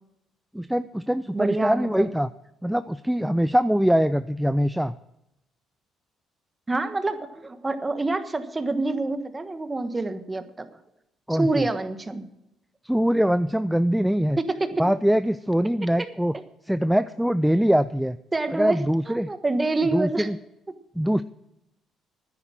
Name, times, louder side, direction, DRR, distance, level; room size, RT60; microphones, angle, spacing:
voice 1, 0.5-2.3 2.6-4.9 11.3-11.7 12.8-14.4 14.8-16.4 16.7-18.2 18.5-19.3 19.9-20.4 21.0-21.2, equal, 5° right, 12 dB, 0.4 m, -23 dB
voice 2, 1.3-2.1 6.7-10.7 11.3-12.3 14.4-14.8 18.3-18.8 19.1-20.3 20.7-20.8, right 2 dB, 20° right, 9 dB, 1.3 m, -27 dB
9.9 x 9.9 x 7.4 m, 0.86 s
cardioid pair, 90°, 0 cm